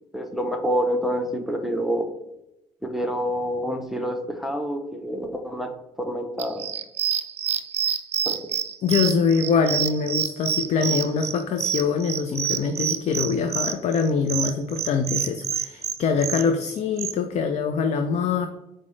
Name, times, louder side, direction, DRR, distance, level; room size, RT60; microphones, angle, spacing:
voice 1, 0.0-2.1 2.8-5.7 6.0-6.6 8.3-8.4, equal, ahead, 4 dB, 0.6 m, -27 dB
sound 1, 6.4-17.1, right 9 dB, 50° right, 0.4 m, -27 dB
voice 2, 8.8-18.5, left 5 dB, 55° left, 7 dB, 0.4 m, -24 dB
5.1 x 2.1 x 3.1 m, 0.92 s
supercardioid pair, 65°, 14 cm